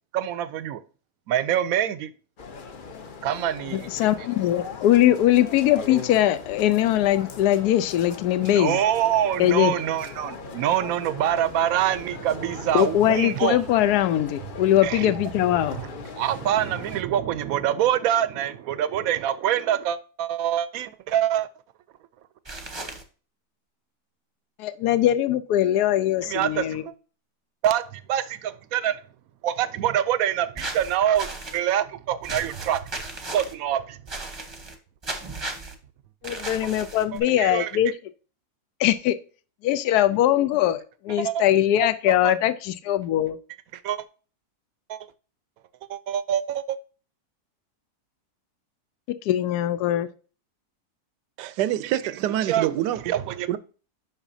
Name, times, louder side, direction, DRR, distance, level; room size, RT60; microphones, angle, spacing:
voice 1, 0.1-0.8 1.3-2.1 3.2-4.1 8.5-13.6 14.8-15.1 15.7-15.9 16.2-21.5 26.2-26.9 27.6-29.0 29.4-32.9 33.3-34.0 37.1-37.7 41.2-41.4 42.1-42.3 43.7-44.1 44.9-45.0 45.9-46.8 52.5-52.7 53.1-53.6, right 11 dB, 70° right, 0.9 m, -25 dB
sound 1, 2.4-17.0, left 5 dB, 50° left, 0.6 m, -39 dB
voice 2, 3.7-8.8 9.4-9.7 12.7-15.8 24.6-26.8 36.2-37.9 38.8-39.2 39.6-43.4 49.2-50.1, left 12 dB, 80° left, 1.1 m, -21 dB
sound 2, 22.4-23.0 30.6-31.6 32.2-33.5 34.1-34.8 35.0-35.7 36.2-37.2, right 2 dB, 20° right, 0.8 m, -35 dB
voice 3, 51.4-53.1 53.5-53.6, right 12 dB, 85° right, 1.2 m, -26 dB
8.0 x 5.9 x 2.6 m
omnidirectional pair, 1.8 m